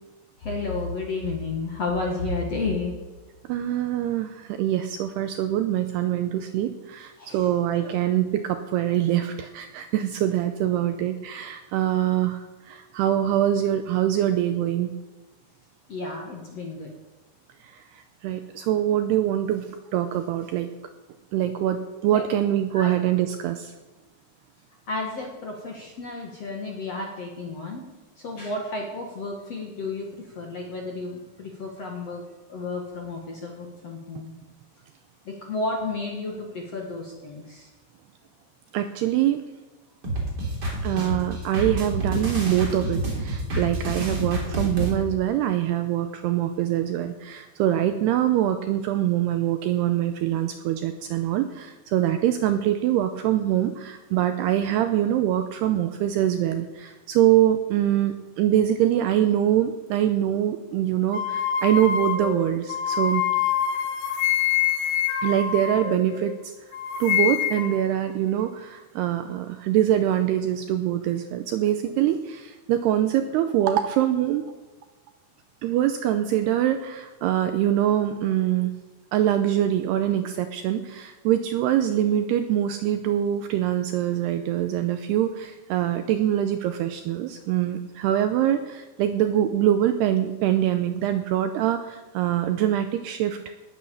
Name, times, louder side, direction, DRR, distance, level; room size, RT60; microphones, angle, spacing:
voice 1, 0.4-3.0 7.2-7.5 15.9-16.9 22.1-22.2 22.7-22.9 24.9-27.8 28.2-32.2 32.5-34.3 35.3-37.7, left 3 dB, 55° left, 0 dB, 1.9 m, -32 dB
voice 2, 3.5-14.9 17.6-19.7 19.9-20.7 21.3-23.7 38.7-39.4 40.8-63.2 65.2-66.5 67.0-74.5 75.6-78.7 79.1-93.4, right 11 dB, 85° right, 8 dB, 2.4 m, -24 dB
sound 1, 40.0-44.9, right 1 dB, 25° right, 3.1 m, -28 dB
sound 2, 61.1-66.4 66.7-67.8, left 9 dB, 75° left, 3.3 m, -25 dB
19.0 x 8.6 x 7.0 m, 1.2 s
omnidirectional pair, 5.4 m